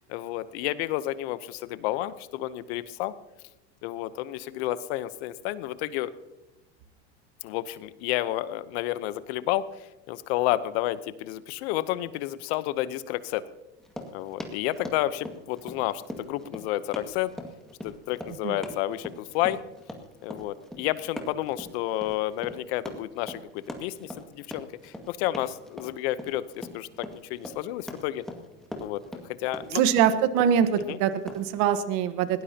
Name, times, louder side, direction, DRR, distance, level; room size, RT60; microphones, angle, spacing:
voice 1, 0.0-3.1 3.8-6.1 7.4-13.4 14.1-17.3 17.8-19.6 20.2-28.2 28.8-29.0 29.3-29.8 30.9-31.0, left 14 dB, 70° left, 15 dB, 0.9 m, -31 dB
Run, 13.8-31.5, left 1 dB, ahead, 2.1 m, -41 dB
voice 2, 29.7-32.4, right 8 dB, 60° right, 10 dB, 1.3 m, -23 dB
21.0 x 18.0 x 2.9 m, 1.0 s
supercardioid pair, 115°, 33 cm